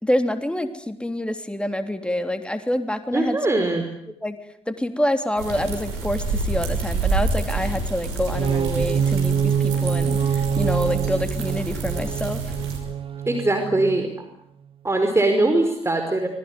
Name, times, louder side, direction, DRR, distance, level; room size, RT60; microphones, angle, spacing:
voice 1, 0.0-3.4 4.2-4.4 4.7-12.5, left 1 dB, 5° left, 8 dB, 3.3 m, -26 dB
voice 2, 3.1-3.9 13.3-14.1 14.8-16.3, right 2 dB, 20° right, 5 dB, 5.1 m, -21 dB
sound 1, 5.4-12.8, right 3 dB, 80° right, 5.8 m, -28 dB
sound 2, 8.2-14.2, right 7 dB, 40° right, 1.3 m, -25 dB
26.0 x 21.0 x 9.8 m, 0.72 s
figure-of-eight pair, 45°, 14 cm